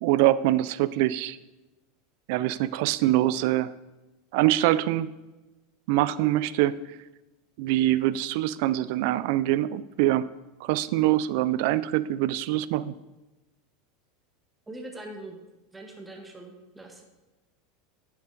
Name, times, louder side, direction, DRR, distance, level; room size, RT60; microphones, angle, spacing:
voice 1, 0.0-1.4 2.3-3.7 4.3-5.1 5.9-6.8 7.6-10.3 10.6-12.9, right 14 dB, 65° right, 16 dB, 0.4 m, -24 dB
voice 2, 14.7-15.4 15.7-17.0, right 1 dB, 10° right, 2 dB, 1.2 m, -42 dB
9.4 x 7.2 x 3.8 m, 1.1 s
supercardioid pair, 130°, 0 cm